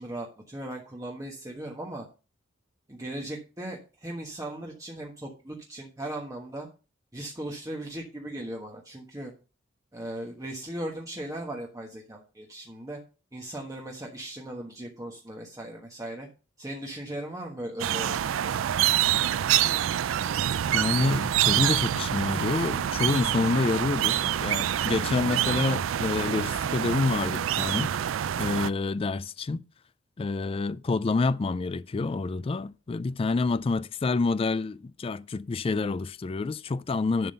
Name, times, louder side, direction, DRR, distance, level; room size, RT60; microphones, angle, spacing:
voice 1, 0.0-2.1 2.9-6.7 7.1-9.3 9.9-13.0 13.3-16.3 16.6-18.8, right 1 dB, 15° right, 1.3 m, -38 dB
sound 1, 17.8-28.7, right 11 dB, 80° right, 0.4 m, -26 dB
voice 2, 20.7-29.6 30.2-37.3, left 3 dB, 30° left, 0.3 m, -28 dB
11.0 x 3.8 x 6.6 m
head